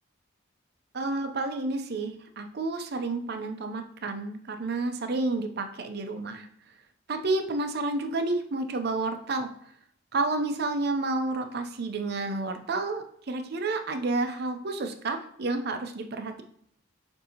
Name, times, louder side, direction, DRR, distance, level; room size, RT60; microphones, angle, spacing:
voice 1, 0.9-6.5 7.1-9.5 10.1-16.4, right 2 dB, 50° right, 6 dB, 0.5 m, -30 dB
6.7 x 2.7 x 2.8 m, 0.67 s
head